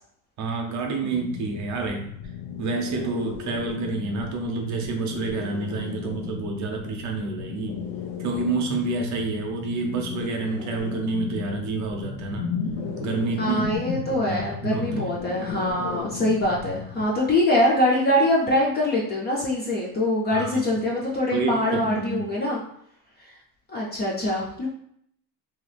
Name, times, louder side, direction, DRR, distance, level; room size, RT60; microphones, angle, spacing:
voice 1, 0.4-2.1 2.6-7.8 8.2-12.5 13.0-13.7 14.3-15.2 20.3-20.8 21.3-22.2, right 3 dB, 45° right, 2 dB, 0.6 m, -28 dB
sound 1, 1.1-17.1, left 7 dB, 70° left, 0.6 m, -35 dB
voice 2, 13.4-22.6 23.7-24.7, left 1 dB, 25° left, -4 dB, 0.4 m, -23 dB
2.8 x 2.3 x 3.2 m, 0.68 s
cardioid pair, 165°, 43 cm